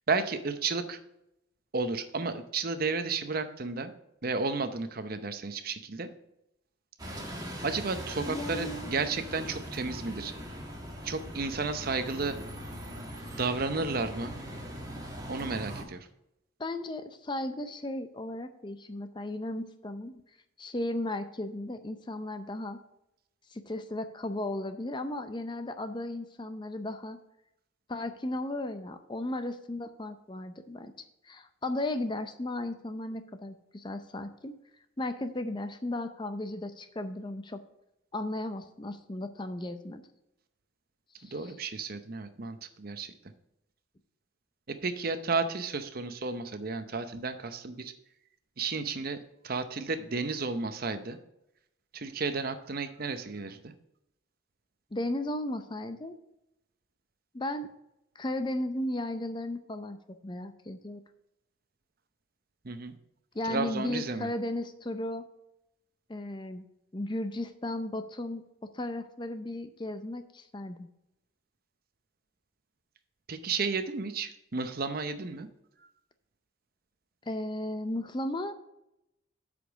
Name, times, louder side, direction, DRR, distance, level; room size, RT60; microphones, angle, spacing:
voice 1, 0.1-1.0 1.7-3.9 4.2-6.1 7.6-10.3 11.0-12.4 13.3-14.3 15.3-16.1 41.2-43.1 44.7-47.9 48.6-51.2 51.9-53.7 62.6-62.9 63.4-64.3 73.3-75.5 75.8-75.9, right 4 dB, 45° right, 9 dB, 0.7 m, -32 dB
Bus, 7.0-15.8, equal, 20° right, 1.6 m, -40 dB
voice 2, 8.3-8.9 16.6-20.2 20.6-22.8 23.5-27.2 27.9-30.9 31.2-34.5 35.0-37.6 38.1-40.0 41.2-41.3 54.9-56.1 57.3-57.7 58.2-60.0 60.2-61.0 63.3-65.3 66.1-66.6 66.9-70.9 77.3-78.5, left 1 dB, 20° left, 9 dB, 0.5 m, -35 dB
8.3 x 5.2 x 6.2 m, 0.84 s
head